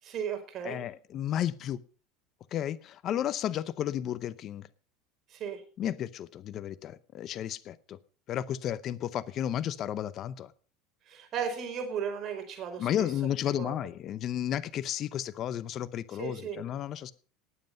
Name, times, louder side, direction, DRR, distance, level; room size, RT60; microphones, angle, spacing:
voice 1, 0.0-0.8 5.3-5.6 11.1-13.1 13.5-13.7 16.2-16.6, right 7 dB, 45° right, 6 dB, 4.9 m, -35 dB
voice 2, 0.6-1.8 2.5-4.7 5.8-8.0 8.3-10.5 12.8-17.1, left 11 dB, 45° left, 15 dB, 0.7 m, -33 dB
18.5 x 7.7 x 5.3 m, 0.40 s
supercardioid pair, 115°, 0 cm